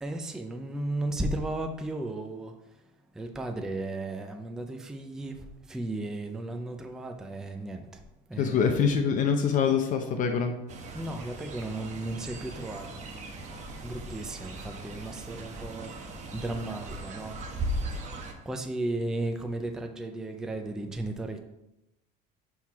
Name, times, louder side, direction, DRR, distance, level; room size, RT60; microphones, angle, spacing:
voice 1, 0.0-2.6 3.1-8.0 8.3-8.9 10.9-13.0 13.8-17.4 18.4-21.4, right 2 dB, 5° right, 5 dB, 0.4 m, -35 dB
voice 2, 8.4-10.5, left 6 dB, 40° left, 5 dB, 0.6 m, -25 dB
Fowl, 10.7-18.3, right 1 dB, 35° right, 0.9 m, -38 dB
5.8 x 4.5 x 4.6 m, 0.91 s
cardioid pair, 155°, 20 cm